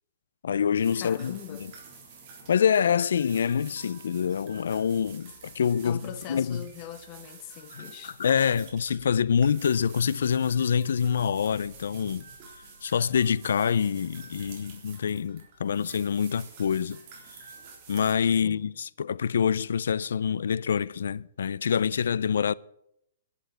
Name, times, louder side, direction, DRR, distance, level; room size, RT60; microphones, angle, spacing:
voice 1, 0.4-1.7 2.5-6.6 7.8-12.3 12.8-17.0 17.9-22.5, left 7 dB, 80° left, 0.4 m, -26 dB
sound 1, 0.7-18.1, right 5 dB, 30° right, 3.7 m, -49 dB
voice 2, 1.0-1.7 5.8-8.2 18.4-18.7, left 10 dB, 25° left, 1.5 m, -41 dB
11.5 x 10.5 x 8.8 m
hypercardioid pair, 175°, 0 cm